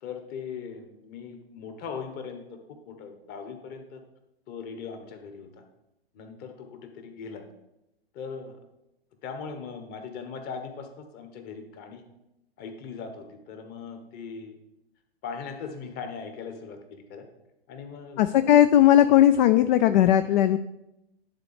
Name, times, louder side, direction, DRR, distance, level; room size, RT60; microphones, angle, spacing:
voice 1, 0.0-2.4 2.8-4.0 4.5-5.5 6.1-7.4 8.1-8.6 9.2-12.0 12.6-14.5 15.2-17.2 17.7-18.3, left 5 dB, 30° left, 6 dB, 1.3 m, -39 dB
voice 2, 18.2-20.6, left 11 dB, 50° left, 12 dB, 0.4 m, -18 dB
10.5 x 4.1 x 5.0 m, 0.89 s
hypercardioid pair, 115°, 31 cm